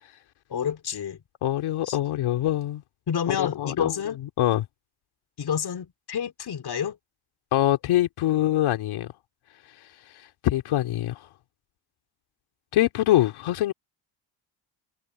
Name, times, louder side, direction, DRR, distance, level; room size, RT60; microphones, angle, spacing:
voice 1, 0.5-1.2 1.8-2.0 3.1-4.2 5.4-7.0, left 8 dB, 50° left, 3.2 m, -29 dB
voice 2, 1.4-2.8 3.3-3.9 4.4-4.6 7.5-9.1 10.4-11.3 12.7-13.7, left 13 dB, 75° left, 2.9 m, -24 dB
supercardioid pair, 75°, 49 cm